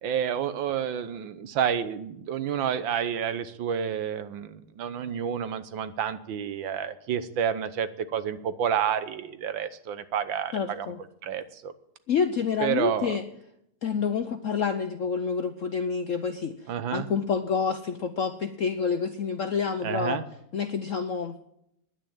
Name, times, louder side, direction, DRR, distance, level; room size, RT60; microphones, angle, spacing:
voice 1, 0.0-10.9 11.2-11.7 12.6-13.2 16.7-17.1 19.8-20.2, right 8 dB, 70° right, 12 dB, 1.5 m, -29 dB
voice 2, 10.5-11.0 12.1-13.2 13.8-20.2 20.5-21.4, left 6 dB, 90° left, 8 dB, 0.7 m, -28 dB
10.5 x 9.4 x 8.8 m, 0.76 s
omnidirectional pair, 2.3 m